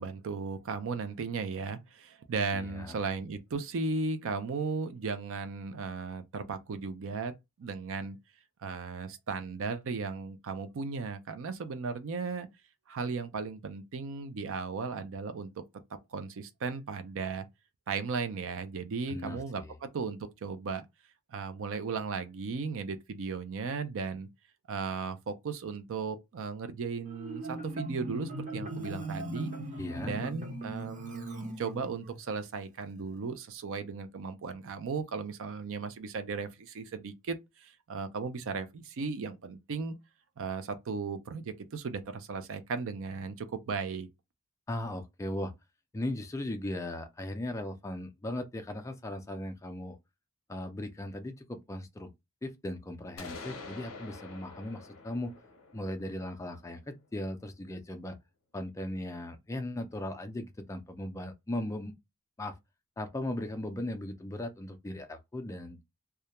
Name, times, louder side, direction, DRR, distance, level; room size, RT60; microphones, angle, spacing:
voice 1, 0.0-7.3 7.6-8.2 8.6-12.5 12.9-15.6 16.1-17.5 17.9-20.8 21.3-24.3 24.7-29.5 30.0-39.9 40.4-44.1, right 4 dB, 60° right, 0.4 m, -36 dB
voice 2, 2.5-3.0 19.1-19.7 29.8-30.2 44.7-45.5 45.9-50.0 50.5-52.1 52.4-55.3 55.7-58.2 58.5-61.9 62.4-62.5 63.0-65.8, left 1 dB, 15° left, 0.3 m, -38 dB
Marimba xylophone, 27.1-32.2, right 1 dB, 35° right, 0.8 m, -39 dB
sound 1, 53.2-57.0, left 3 dB, 60° left, 0.6 m, -47 dB
2.3 x 2.1 x 2.8 m
head